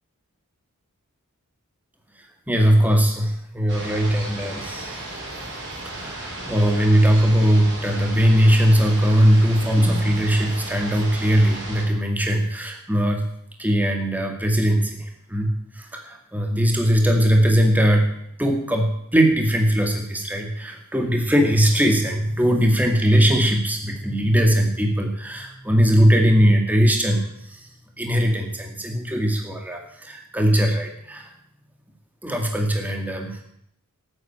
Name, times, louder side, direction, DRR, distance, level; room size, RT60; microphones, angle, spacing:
voice 1, 2.5-5.0 5.8-13.3 13.6-15.0 15.3-18.1 18.4-27.2 28.0-31.3 32.2-33.4, equal, 10° right, 2 dB, 2.1 m, -20 dB
sound 1, 3.7-11.8, right 2 dB, 55° right, 6.1 m, -35 dB
15.0 x 9.0 x 8.8 m, 0.70 s
head